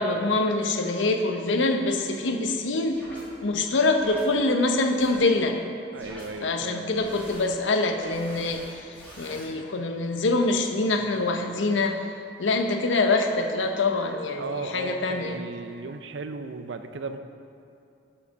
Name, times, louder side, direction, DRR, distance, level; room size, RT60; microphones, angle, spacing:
voice 1, 0.0-3.0 3.4-5.6 6.4-12.1 12.4-15.4, left 2 dB, 90° left, 5 dB, 0.7 m, -25 dB
sound 1, 2.9-3.2 3.9-4.2 5.0-5.2 5.9-6.3 6.9-7.4 7.9-9.5, equal, 10° left, 1.8 m, -45 dB
voice 2, 5.9-6.9 14.4-17.2, right 4 dB, 80° right, 8 dB, 0.5 m, -35 dB
6.6 x 5.6 x 6.2 m, 2.6 s
head